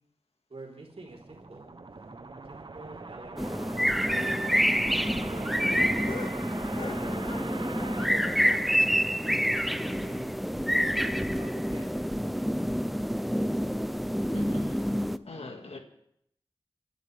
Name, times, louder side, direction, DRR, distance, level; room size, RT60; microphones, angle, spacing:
voice 1, 0.5-2.1 2.5-3.7 4.0-4.5 5.3-5.7 6.9-8.4 8.8-8.9 9.4-10.3 11.0-11.9, right 2 dB, 75° right, -2 dB, 4.0 m, -47 dB
sound 1, 0.9-9.2, right 3 dB, 50° right, 1.0 m, -41 dB
sound 2, 3.4-15.2, equal, ahead, 0.6 m, -27 dB
sound 3, 6.0-8.1 8.4-10.4 10.7-10.8 11.0-11.1 11.5-11.7 12.2-12.5 13.4-13.5, left 4 dB, 55° left, 0.7 m, -45 dB
voice 2, 14.3-15.8, left 2 dB, 80° left, 3 dB, 2.0 m, -42 dB
29.5 x 11.5 x 3.5 m, 0.72 s
wide cardioid pair, 75°, 10 cm